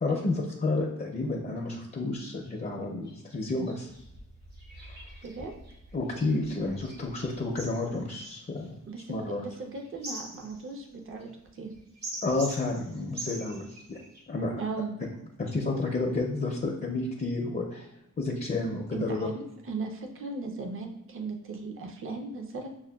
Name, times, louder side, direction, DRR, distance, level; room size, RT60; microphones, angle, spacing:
voice 1, 0.0-3.9 4.7-5.1 5.9-8.8 9.1-9.4 12.2-14.0 14.3-14.6 15.4-17.9 18.2-19.3, left 2 dB, 30° left, 0 dB, 0.4 m, -31 dB
sound 1, 2.4-2.6 3.0-3.2 3.6-14.2, right 1 dB, 60° right, 1.4 m, -44 dB
voice 2, 8.9-11.7 14.5-15.0 18.9-22.7, right 3 dB, 45° right, 3 dB, 0.5 m, -37 dB
6.2 x 2.1 x 2.2 m, 0.87 s
wide cardioid pair, 115°, 30 cm